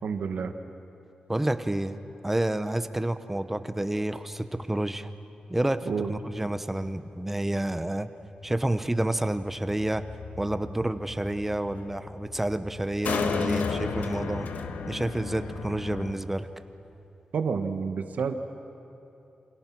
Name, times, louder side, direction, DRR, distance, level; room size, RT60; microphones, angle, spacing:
voice 1, 0.0-0.5 5.8-6.1 17.3-18.3, right 6 dB, 70° right, 7 dB, 1.4 m, -29 dB
voice 2, 1.3-2.0 2.2-5.1 5.5-8.1 8.4-10.0 10.4-14.5 14.9-16.5, right 1 dB, 10° right, 10 dB, 0.8 m, -29 dB
sound 1, 8.4-16.2, left 5 dB, 75° left, 1.5 m, -34 dB
28.5 x 27.0 x 6.1 m, 2.9 s
wide cardioid pair, 165°, 3 cm